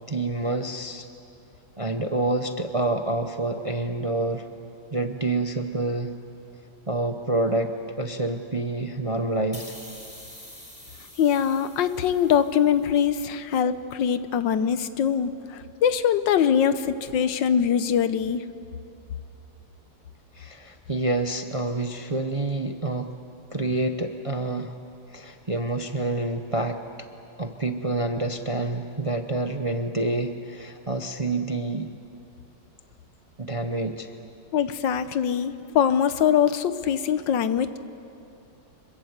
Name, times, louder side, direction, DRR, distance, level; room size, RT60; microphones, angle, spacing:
voice 1, 0.1-1.1 1.8-4.5 4.9-6.2 6.9-9.6 20.3-23.1 23.5-24.8 25.1-27.1 27.4-31.9 33.4-34.1, right 2 dB, 30° right, 6 dB, 0.6 m, -27 dB
sound 1, 9.5-12.9, left 1 dB, 20° left, 4.0 m, -46 dB
voice 2, 11.2-18.4 34.5-37.8, left 8 dB, 85° left, 12 dB, 1.6 m, -23 dB
25.5 x 22.5 x 8.1 m, 2.7 s
omnidirectional pair, 1.9 m